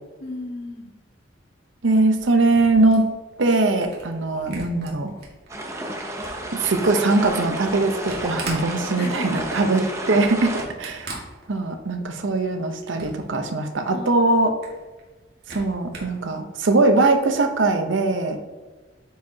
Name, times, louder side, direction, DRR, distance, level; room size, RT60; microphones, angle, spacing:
voice 1, 0.2-0.9 8.9-9.6 13.9-14.4, left 2 dB, 60° left, -1 dB, 1.6 m, -34 dB
voice 2, 1.8-3.1 3.4-5.1 6.6-9.8 10.1-11.1 11.5-14.5 15.5-18.4, right 2 dB, 85° right, 6 dB, 0.8 m, -21 dB
Camera, 2.2-5.5 5.9-12.0 12.4-13.3 13.7-13.8 14.0-14.1 14.4-16.2, right 3 dB, 60° right, 1.8 m, -40 dB
sound 1, 5.5-10.7, right 1 dB, 15° right, 0.7 m, -31 dB
9.1 x 4.7 x 2.8 m, 1.3 s
head